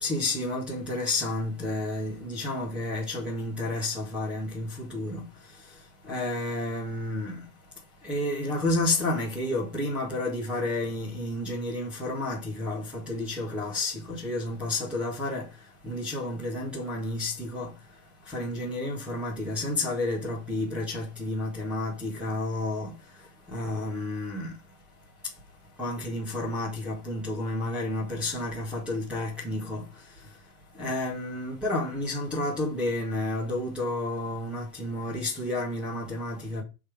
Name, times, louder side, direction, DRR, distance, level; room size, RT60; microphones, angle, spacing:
voice 1, 0.0-5.2 6.1-7.4 8.0-15.5 15.8-17.7 18.3-22.9 23.5-24.5 25.8-29.8 30.8-36.6, left 2 dB, 5° right, 1.9 m, -31 dB
7.2 x 3.5 x 5.1 m
supercardioid pair, 160°, 42 cm